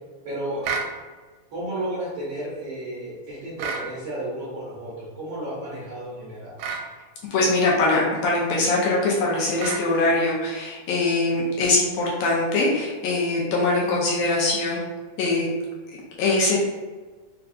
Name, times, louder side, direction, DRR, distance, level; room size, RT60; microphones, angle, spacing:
voice 1, 0.2-0.9 1.5-6.5, right 1 dB, 70° right, -7 dB, 1.6 m, -32 dB
sound 1, 0.6-0.9 3.6-3.9 6.6-6.9 9.6-9.9, right 5 dB, 85° right, 1.9 m, -29 dB
voice 2, 7.3-14.8 15.2-15.5 15.9-16.6, left 2 dB, 80° left, -4 dB, 1.8 m, -22 dB
4.8 x 2.3 x 2.5 m, 1.4 s
omnidirectional pair, 3.4 m